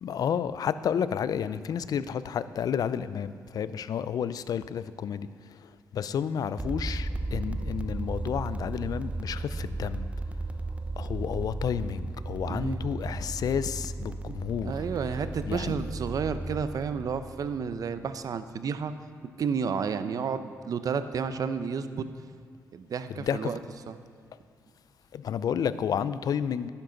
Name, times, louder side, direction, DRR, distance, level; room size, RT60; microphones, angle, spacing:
voice 1, 0.0-10.1 11.0-14.8 15.4-15.8 23.1-23.5 25.1-26.7, left 8 dB, 65° left, 15 dB, 0.5 m, -31 dB
sound 1, 6.6-18.3, right 2 dB, 20° right, 0.5 m, -35 dB
voice 2, 12.5-12.8 14.3-14.4 14.6-18.9 19.4-22.1 22.7-23.6 23.9-24.0, right 6 dB, 60° right, 11 dB, 0.7 m, -31 dB
12.0 x 10.0 x 3.9 m, 2.2 s
supercardioid pair, 60°, 7 cm